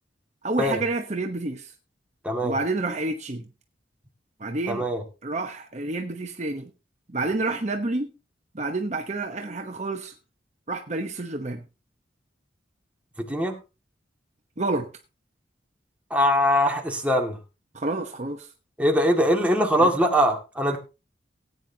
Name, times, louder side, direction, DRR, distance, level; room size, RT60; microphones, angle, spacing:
voice 1, 0.4-1.7 2.4-3.5 4.4-4.9 5.2-6.7 7.1-8.1 8.5-10.1 10.7-11.6 14.6-14.9 17.7-18.5 19.8-19.9, right 2 dB, 40° right, 1.0 m, -29 dB
voice 2, 2.2-2.6 4.7-5.0 13.2-13.6 16.1-17.4 18.8-20.8, equal, 5° right, 2.1 m, -22 dB
17.5 x 9.4 x 2.9 m
head